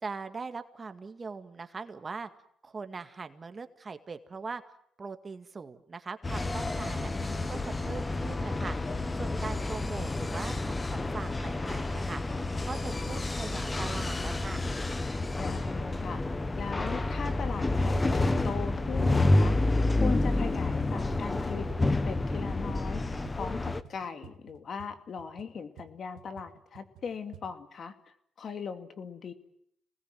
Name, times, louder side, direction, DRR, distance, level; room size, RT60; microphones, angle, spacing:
voice 1, 0.0-2.3 2.6-4.6 5.0-14.6, right 4 dB, 30° right, 8 dB, 2.0 m, -41 dB
sound 1, 6.2-23.8, left 2 dB, 20° left, 1.3 m, -29 dB
voice 2, 6.7-7.5 15.1-16.2 16.6-19.6 20.0-21.7 22.0-29.3, left 6 dB, 55° left, 8 dB, 2.5 m, -39 dB
sound 2, 17.0-21.8 22.1-27.5, right 8 dB, 85° right, 2.2 m, -53 dB
27.5 x 20.0 x 9.4 m, 0.72 s
cardioid pair, 90°, 0 cm